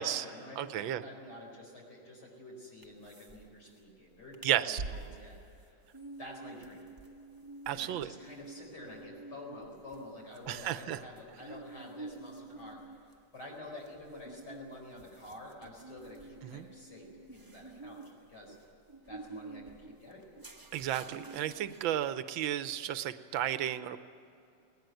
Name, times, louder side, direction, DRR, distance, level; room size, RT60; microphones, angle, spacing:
voice 1, 0.0-5.8 6.2-6.8 7.7-12.8 13.3-18.6 19.1-20.3, left 1 dB, 55° left, -2 dB, 5.3 m, -49 dB
voice 2, 0.6-1.0 4.4-4.8 7.7-8.1 10.5-11.0 16.4-16.7 20.7-24.0, right 11 dB, 80° right, 12 dB, 1.6 m, -33 dB
sound 1, 2.8-3.4 3.7-3.8 4.2-4.6 5.0-22.1, right 3 dB, 15° right, 0.9 m, -50 dB
sound 2, 4.8-6.6, right 4 dB, 50° right, 1.5 m, -43 dB
20.0 x 19.5 x 9.2 m, 2.6 s
omnidirectional pair, 2.2 m